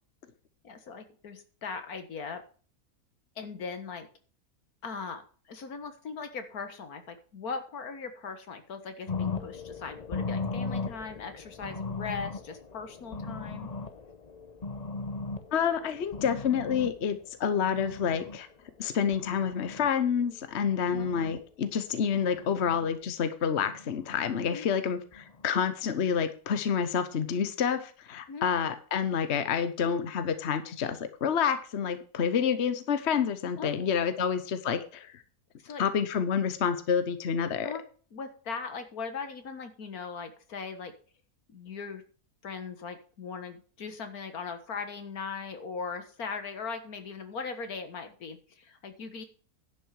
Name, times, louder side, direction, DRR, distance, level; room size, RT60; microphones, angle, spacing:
voice 1, 0.6-2.4 3.4-4.1 4.8-13.7 20.9-21.1 24.5-24.7 28.3-28.5 33.6-33.7 34.3-34.4 35.6-35.8 37.6-37.8 38.1-40.9 41.5-42.0 42.4-49.2, left 5 dB, 70° left, 8 dB, 1.9 m, -39 dB
sound 1, 9.1-18.4 18.9-19.9 20.4-21.4 22.1-22.9 23.6-24.4 25.1-25.5, left 4 dB, 30° left, 0.9 m, -38 dB
voice 2, 15.5-18.5 18.8-35.2 35.8-37.7, left 7 dB, 50° left, 10 dB, 1.2 m, -28 dB
11.0 x 6.3 x 6.4 m, 0.40 s
omnidirectional pair, 1.6 m